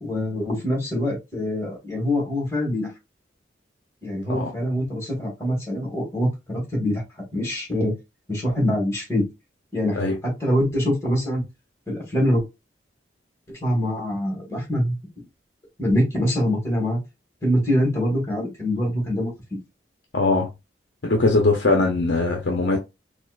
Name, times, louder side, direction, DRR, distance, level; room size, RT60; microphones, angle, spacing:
voice 1, 0.0-2.9 4.0-7.0 7.3-7.9 8.3-9.2 9.7-10.0 10.2-11.4 11.9-12.4 13.5-14.9 15.8-17.0 17.4-19.6, equal, 15° left, 1.7 m, -24 dB
voice 2, 20.1-20.5 21.0-22.8, left 2 dB, 65° left, 0.7 m, -20 dB
4.3 x 2.4 x 2.4 m
head